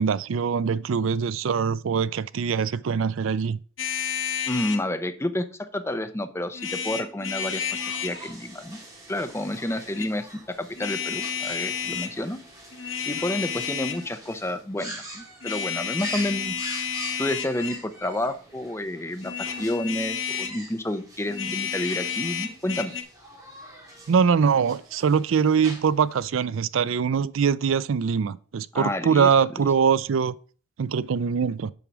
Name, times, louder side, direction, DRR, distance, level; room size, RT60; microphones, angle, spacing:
voice 1, 0.0-3.6 24.1-30.3 30.8-31.7, right 6 dB, 80° right, 0.4 m, -23 dB
sound 1, 3.8-4.8 6.5-8.2 9.7-10.1 10.8-12.1 12.7-14.1 15.4-17.9 19.2-20.6 21.3-23.0, left 7 dB, 70° left, 1.1 m, -31 dB
voice 2, 4.5-8.8 9.1-12.4 13.1-16.6 17.2-22.9 28.7-29.3, left 1 dB, 15° left, 0.7 m, -30 dB
sound 2, 7.4-26.2, right 1 dB, 20° right, 2.6 m, -44 dB
7.0 x 4.8 x 6.1 m
head